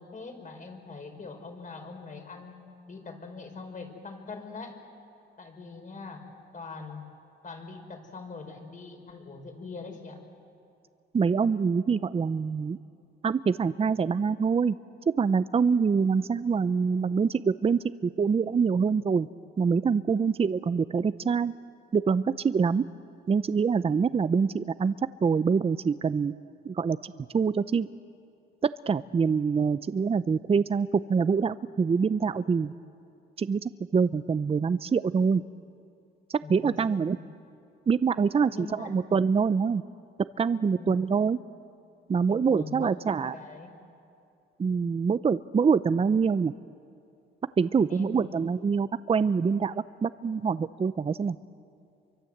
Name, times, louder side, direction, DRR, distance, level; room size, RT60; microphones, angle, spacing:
voice 1, 0.0-2.6 2.9-4.8 5.4-6.2 6.5-7.1 7.4-10.2 36.4-37.0 38.5-38.9 40.8-41.0 42.3-43.7 47.9-48.2, left 4 dB, 40° left, 4 dB, 5.7 m, -42 dB
voice 2, 11.1-12.8 13.2-14.8 15.2-19.3 19.6-21.5 21.9-22.8 23.3-25.0 25.2-26.3 26.6-27.9 28.9-32.7 33.4-33.6 33.9-35.4 36.3-37.2 37.9-39.8 40.4-41.4 42.1-43.3 44.6-46.5 47.6-51.4, right 5 dB, 30° right, 14 dB, 0.6 m, -25 dB
29.0 x 24.0 x 8.0 m, 2.5 s
cardioid pair, 90°, 20 cm